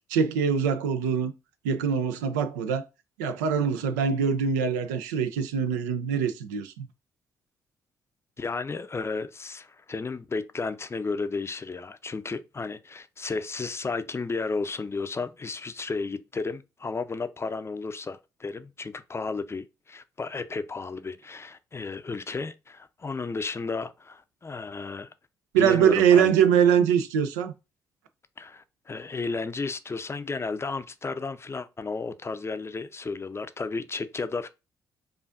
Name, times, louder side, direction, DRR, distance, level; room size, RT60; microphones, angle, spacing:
voice 1, 0.1-1.3 1.6-2.9 3.2-6.9 25.5-27.5, right 7 dB, 85° right, 0.4 m, -23 dB
voice 2, 8.4-25.1 25.6-26.3 28.4-34.5, left 4 dB, 30° left, 0.5 m, -33 dB
4.8 x 2.5 x 2.4 m
hypercardioid pair, 40°, 9 cm